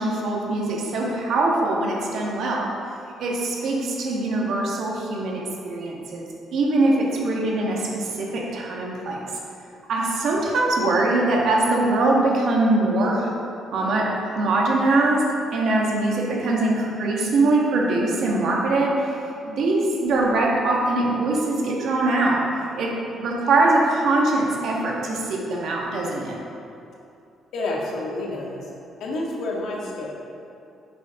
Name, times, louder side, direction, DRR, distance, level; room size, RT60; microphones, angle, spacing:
voice 1, 0.0-2.7 3.2-9.2 9.9-13.3 13.7-15.3 15.5-19.2 19.4-22.4 22.8-26.4, right 2 dB, 65° right, -2 dB, 1.7 m, -22 dB
voice 2, 27.5-28.7 29.0-30.1, left 2 dB, 70° left, -3 dB, 1.8 m, -29 dB
10.0 x 6.9 x 3.7 m, 2.6 s
cardioid pair, 125°, 0 cm